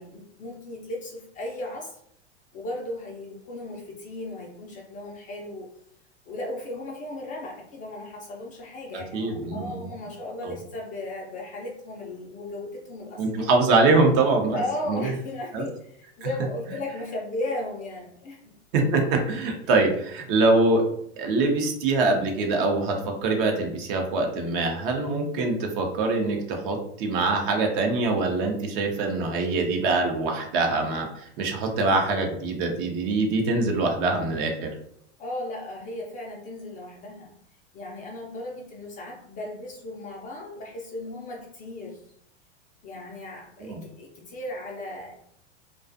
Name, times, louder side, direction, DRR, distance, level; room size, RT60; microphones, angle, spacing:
voice 1, 0.0-2.0 2.5-5.7 6.3-13.5 14.5-18.5 35.2-37.3 37.7-42.1 42.8-45.1, left 1 dB, 25° left, -1 dB, 0.4 m, -36 dB
voice 2, 8.9-9.9 10.4-10.6 13.2-14.6 14.9-15.1 15.5-15.6 18.7-20.8 21.2-34.7 43.7-43.8, right 3 dB, 50° right, 2 dB, 0.7 m, -24 dB
2.4 x 2.3 x 2.5 m, 0.68 s
hypercardioid pair, 105°, 35 cm